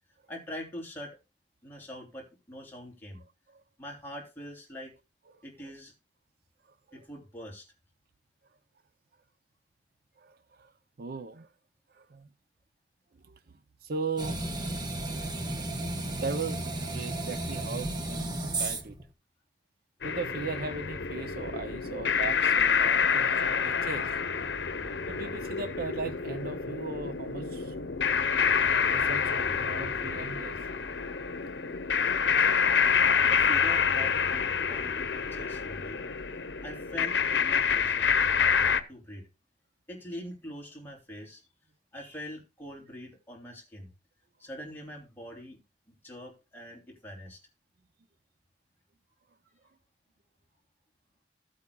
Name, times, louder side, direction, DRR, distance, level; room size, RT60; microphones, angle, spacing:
voice 1, 0.3-1.2 1.6-3.2 3.8-4.9 5.4-5.9 6.9-7.7 33.3-34.4 34.7-36.0 36.6-38.1 38.6-39.3 39.9-41.4 41.9-43.9 44.4-45.6 45.9-47.4, left 1 dB, 10° left, 3.0 m, -43 dB
voice 2, 10.2-10.7 11.0-11.5 11.9-12.3 13.3-13.4 13.8-14.4 15.1-15.3 16.2-18.9 20.0-24.1 25.1-27.7 28.9-30.5, right 4 dB, 55° right, 0.6 m, -38 dB
sound 1, 14.2-19.0, right 2 dB, 25° right, 1.1 m, -33 dB
sound 2, 20.0-38.8, left 6 dB, 80° left, 0.9 m, -27 dB
16.0 x 8.4 x 2.3 m
head